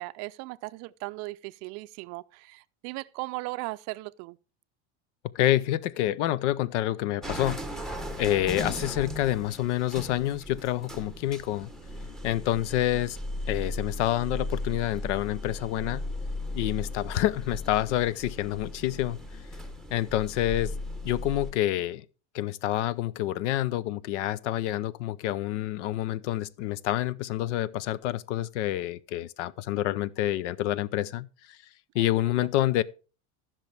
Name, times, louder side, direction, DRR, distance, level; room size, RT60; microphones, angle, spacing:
voice 1, 0.0-4.4 32.0-32.3, right 22 dB, 50° right, 0.5 m, -38 dB
voice 2, 5.3-7.6 8.2-11.7 12.2-13.2 13.5-16.1 16.5-19.2 19.9-20.7 21.0-22.0 22.3-31.3 31.9-32.8, left 13 dB, 85° left, 0.7 m, -28 dB
sound 1, 7.2-21.5, left 1 dB, ahead, 1.0 m, -37 dB
14.5 x 6.1 x 3.3 m
supercardioid pair, 135°, 35 cm